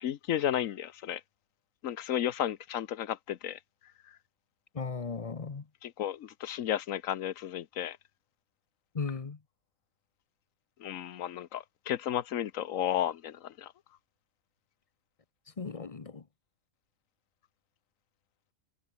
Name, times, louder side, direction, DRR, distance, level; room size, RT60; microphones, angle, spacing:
voice 1, 0.0-1.2 1.8-3.6 4.1-4.2 5.8-8.0 10.8-13.7, left 10 dB, 75° left, 1.2 m, -33 dB
voice 2, 4.7-5.7 8.9-9.4 15.6-16.3, left 4 dB, 30° left, 0.9 m, -36 dB
omnidirectional pair, 1.4 m